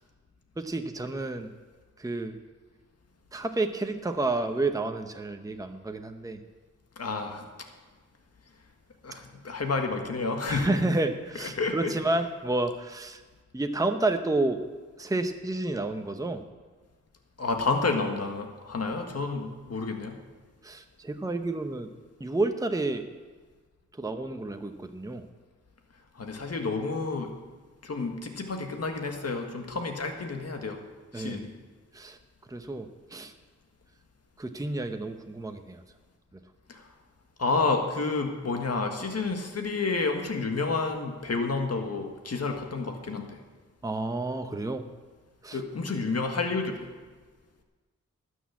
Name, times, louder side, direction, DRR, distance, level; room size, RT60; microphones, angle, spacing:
voice 1, 0.6-1.5 2.0-2.4 3.3-6.4 10.5-13.2 13.5-14.6 15.0-16.4 20.6-21.9 22.2-23.0 24.0-25.3 31.1-31.5 31.9-32.2 32.5-33.3 34.4-35.8 43.8-44.8 45.4-45.6, right 2 dB, 10° right, 6 dB, 0.8 m, -30 dB
voice 2, 7.0-7.5 9.0-10.8 11.3-11.9 17.4-20.2 26.1-27.3 27.8-30.8 31.1-31.5 36.7-36.8 37.4-43.4 45.5-46.9, left 3 dB, 55° left, 4 dB, 1.7 m, -30 dB
12.5 x 6.4 x 8.3 m, 1.4 s
cardioid pair, 65°, 31 cm